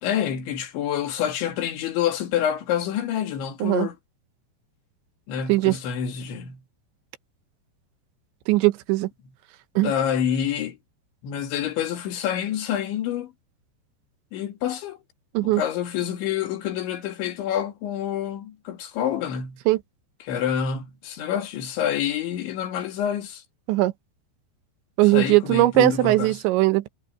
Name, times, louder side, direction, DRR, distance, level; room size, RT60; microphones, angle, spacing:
voice 1, 0.0-4.0 5.3-6.6 9.8-10.8 11.2-13.3 14.3-15.0 15.4-19.6 20.2-23.4 25.0-26.4, left 9 dB, 75° left, 4.5 m, -27 dB
voice 2, 8.5-9.1 9.8-9.9 15.3-15.6 19.7-19.8 23.7-23.9 25.0-26.9, right 17 dB, 80° right, 3.2 m, -19 dB
omnidirectional pair, 5.4 m